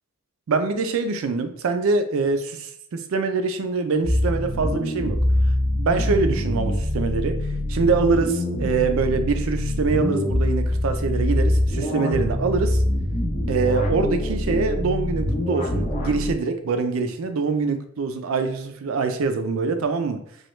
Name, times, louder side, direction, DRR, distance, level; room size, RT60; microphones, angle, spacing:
voice 1, 0.5-5.2 5.7-7.4 7.7-12.8 13.5-20.2, right 4 dB, 75° right, 8 dB, 0.4 m, -24 dB
sound 1, 4.0-16.3, left 1 dB, 35° left, 0.6 m, -24 dB
3.0 x 2.3 x 3.0 m, 0.68 s
head